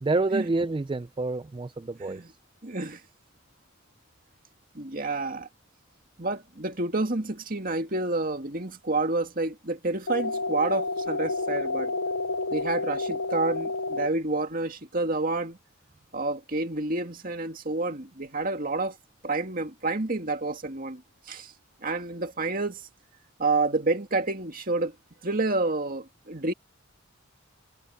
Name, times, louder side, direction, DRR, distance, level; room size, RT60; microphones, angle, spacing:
voice 1, 0.0-2.4, right 3 dB, 20° right, 0.3 m, -28 dB
voice 2, 2.6-3.0 4.7-5.5 6.2-11.9 12.5-15.6 16.1-19.0 19.2-21.0 21.3-21.5 21.8-22.8 23.4-24.9 25.2-26.5, right 2 dB, 40° right, 2.2 m, -29 dB
sound 1, 10.1-14.1, left 3 dB, 90° left, 0.8 m, -30 dB
head